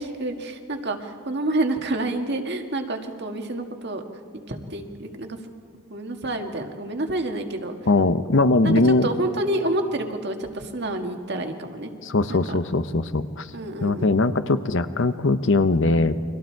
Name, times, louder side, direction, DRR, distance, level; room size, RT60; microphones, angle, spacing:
voice 1, 0.0-4.0 4.5-5.4 5.9-7.7 8.6-11.9 12.3-12.6 13.5-14.1, right 1 dB, 50° right, 4 dB, 1.8 m, -28 dB
voice 2, 7.9-9.1 12.0-13.5 13.8-16.2, left 2 dB, 60° left, 12 dB, 0.8 m, -20 dB
30.0 x 24.0 x 4.6 m, 2.2 s
head